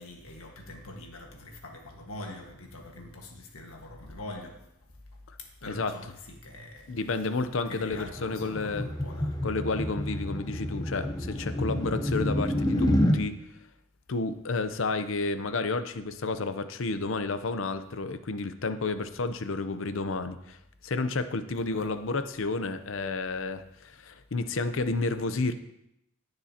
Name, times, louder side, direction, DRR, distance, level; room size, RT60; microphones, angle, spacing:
voice 1, 0.0-4.6 5.4-6.9 7.7-9.4 21.7-21.9, left 1 dB, 85° left, 1 dB, 1.5 m, -43 dB
voice 2, 6.9-8.9 9.4-13.4 14.1-20.6 20.8-25.5, left 3 dB, 65° left, 10 dB, 0.6 m, -31 dB
sound 1, 7.9-13.2, left 1 dB, 20° left, 0.7 m, -28 dB
17.5 x 6.8 x 2.8 m, 0.80 s
head